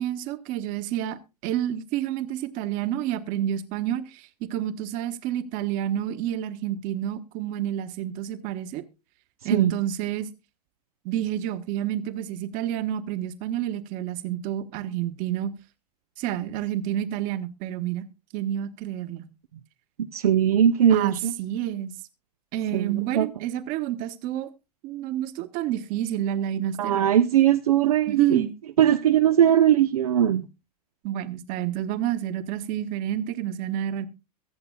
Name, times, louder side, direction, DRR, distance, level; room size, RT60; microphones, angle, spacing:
voice 1, 0.0-8.8 9.4-10.3 11.0-15.5 16.2-18.1 18.3-19.3 20.9-21.9 22.5-24.5 24.8-27.0 28.1-28.5 31.0-34.1, right 11 dB, 45° right, 1.3 m, -29 dB
voice 2, 20.0-21.3 22.7-23.3 26.8-28.4 28.8-30.5, right 10 dB, 65° right, 0.6 m, -20 dB
23.0 x 8.0 x 2.3 m
figure-of-eight pair, 90°, 20 cm